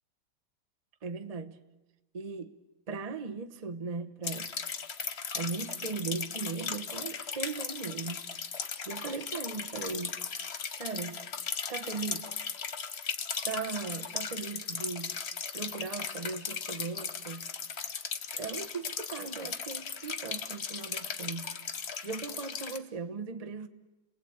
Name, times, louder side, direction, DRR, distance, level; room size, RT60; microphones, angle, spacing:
voice 1, 1.0-1.6 2.1-2.6 2.9-4.5 5.3-8.2 8.8-10.1 10.7-11.2 11.7-12.3 13.4-15.2 15.5-17.5 18.3-23.7, right 4 dB, 45° right, 0.5 m, -38 dB
sound 1, 4.2-22.8, left 6 dB, 50° left, 0.8 m, -37 dB
29.5 x 19.5 x 8.7 m
omnidirectional pair, 2.4 m